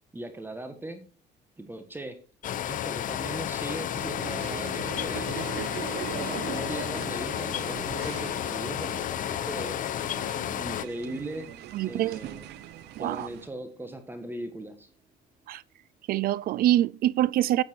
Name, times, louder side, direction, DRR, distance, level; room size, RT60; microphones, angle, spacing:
voice 1, 0.1-1.0 1.6-2.2 2.7-5.4 6.1-9.9 10.5-11.5 11.8-12.5 13.0-14.9, right 1 dB, 10° right, 1.4 m, -39 dB
sound 1, 2.4-10.8, left 11 dB, 50° left, 0.6 m, -32 dB
sound 2, 3.9-14.1, right 5 dB, 35° right, 1.6 m, -44 dB
sound 3, 4.2-13.5, right 11 dB, 80° right, 0.9 m, -42 dB
voice 2, 11.7-12.2 13.0-13.3 15.5-15.6 16.1-17.6, right 13 dB, 60° right, 0.4 m, -25 dB
9.6 x 7.4 x 4.5 m
cardioid pair, 110°, 17 cm